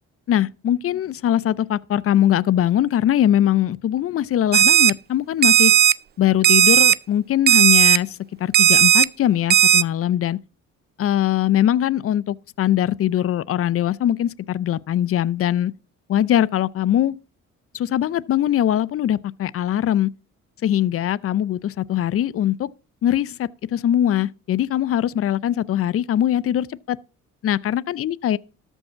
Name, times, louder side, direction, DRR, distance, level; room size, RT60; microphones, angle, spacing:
voice 1, 0.3-5.7 6.2-10.4 11.0-15.7 16.1-17.2 17.7-20.1 20.6-22.7 23.0-27.0 27.4-28.4, left 11 dB, 50° left, 0.5 m, -21 dB
Alarm, 4.5-4.9 5.4-5.9 6.4-6.9 7.5-8.0 8.5-9.1 9.5-9.8, right 10 dB, 35° right, 0.4 m, -14 dB
13.0 x 5.5 x 5.6 m
cardioid pair, 90°, 30 cm